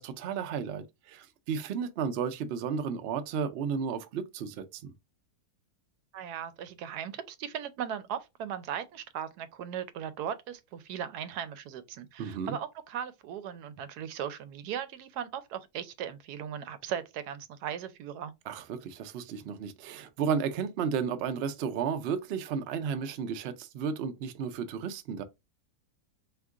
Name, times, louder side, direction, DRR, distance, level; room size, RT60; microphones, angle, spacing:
voice 1, 0.0-4.9 12.2-12.6 18.5-25.2, right 6 dB, 65° right, 0.6 m, -33 dB
voice 2, 6.1-18.3, right 9 dB, 90° right, 1.1 m, -38 dB
3.6 x 2.9 x 3.6 m
omnidirectional pair, 1.6 m